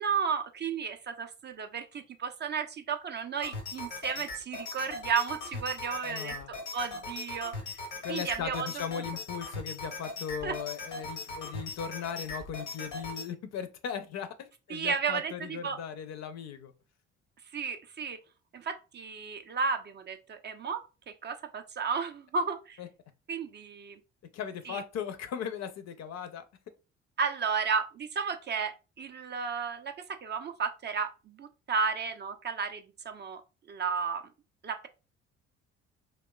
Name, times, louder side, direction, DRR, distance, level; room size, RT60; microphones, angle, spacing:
voice 1, 0.0-6.3 6.7-7.6 8.1-8.7 10.4-10.5 14.7-15.3 15.6-15.8 17.5-18.2 18.5-20.8 21.2-22.8 23.3-24.0 24.7-24.8 27.2-29.9 30.2-33.4 33.7-34.2 34.6-34.9, right 6 dB, 30° right, 0.4 m, -33 dB
sound 1, 3.4-13.3, left 3 dB, 85° left, 0.9 m, -39 dB
voice 2, 6.0-6.5 8.0-16.7 22.8-22.9 24.3-26.4, left 8 dB, 50° left, 0.5 m, -38 dB
2.9 x 2.1 x 2.2 m
hypercardioid pair, 45°, 35 cm